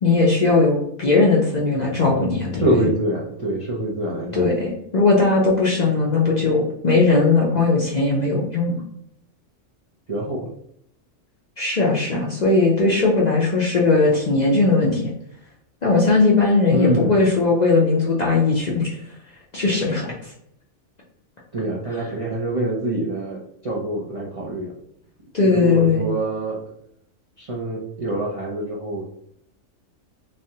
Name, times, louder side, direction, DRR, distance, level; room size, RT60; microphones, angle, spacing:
voice 1, 0.0-2.6 4.3-8.8 11.6-15.1 15.8-18.9 19.5-20.1 25.3-26.1, left 3 dB, 50° left, -3 dB, 0.6 m, -18 dB
voice 2, 2.6-4.6 10.1-10.5 16.7-17.2 21.5-24.7 25.4-26.6 27.4-29.0, right 1 dB, 40° right, -4 dB, 0.5 m, -25 dB
3.4 x 3.2 x 2.8 m, 0.71 s
omnidirectional pair, 1.3 m